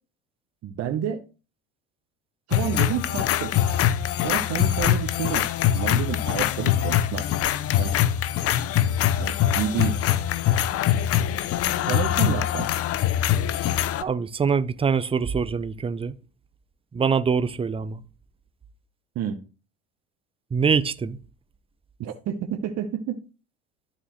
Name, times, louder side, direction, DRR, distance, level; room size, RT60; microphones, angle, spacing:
voice 1, 0.6-1.2 2.5-3.5 4.2-5.5 5.7-7.3 7.8-7.9 9.1-10.0 11.8-12.7 19.2-19.4 22.0-23.2, right 9 dB, 50° right, 0.9 m, -29 dB
sound 1, 2.5-14.0, left 11 dB, 45° left, 0.6 m, -23 dB
voice 2, 14.0-16.1 16.9-18.0 20.5-21.2, right 6 dB, 15° right, 0.6 m, -24 dB
12.5 x 4.2 x 3.1 m
hypercardioid pair, 70°, 33 cm